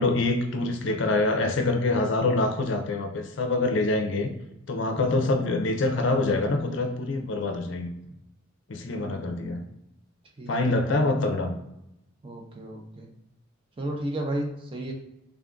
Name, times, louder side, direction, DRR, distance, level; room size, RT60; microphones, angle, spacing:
voice 1, 0.0-4.3 4.7-7.9 8.7-9.6 10.5-11.5, left 2 dB, 60° left, 5 dB, 0.5 m, -25 dB
voice 2, 4.9-5.3 9.0-9.6 10.4-11.1 12.2-13.1 13.8-14.9, right 1 dB, 25° right, 0 dB, 0.6 m, -34 dB
3.5 x 2.4 x 3.7 m, 0.85 s
head